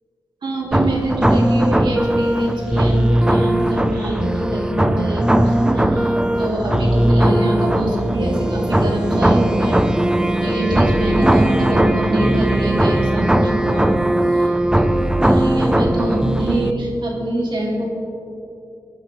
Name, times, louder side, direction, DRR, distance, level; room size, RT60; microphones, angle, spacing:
voice 1, 0.4-9.8 10.4-14.5 14.8-17.9, right 1 dB, 70° right, -2 dB, 3.1 m, -25 dB
sound 1, 0.7-16.7, right 1 dB, 10° right, 0.6 m, -18 dB
20.0 x 11.0 x 3.5 m, 2.7 s
cardioid pair, 70°, 8 cm